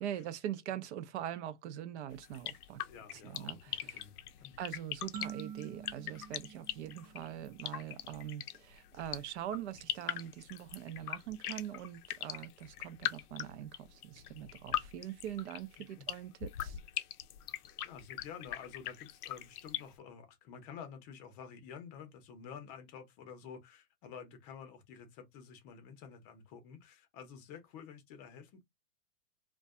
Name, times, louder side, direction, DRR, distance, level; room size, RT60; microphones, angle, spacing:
voice 1, 0.0-2.8 3.1-4.0 4.6-16.8, right 11 dB, 45° right, 0.6 m, -43 dB
sound 1, 2.1-19.8, left 12 dB, 70° left, 0.5 m, -41 dB
voice 2, 2.9-4.6 16.0-16.1 17.8-28.6, left 7 dB, 30° left, 0.7 m, -50 dB
sound 2, 5.1-7.8, right 8 dB, 75° right, 0.9 m, -47 dB
2.5 x 2.2 x 2.3 m
hypercardioid pair, 130°, 47 cm